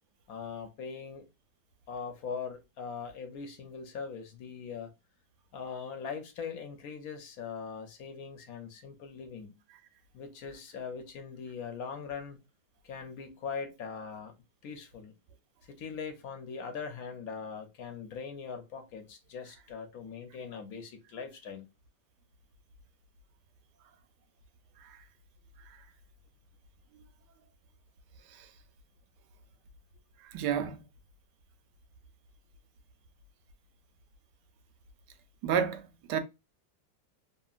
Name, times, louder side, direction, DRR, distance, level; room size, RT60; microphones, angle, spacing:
voice 1, 0.3-1.2 1.9-4.9 5.5-9.6 10.1-12.4 12.8-14.4 14.6-15.2 15.7-21.7, left 6 dB, 65° left, 1.1 m, -41 dB
voice 2, 30.3-30.8 35.4-35.8 36.1-36.2, right 8 dB, 90° right, 1.2 m, -29 dB
2.8 x 2.8 x 2.4 m
omnidirectional pair, 1.8 m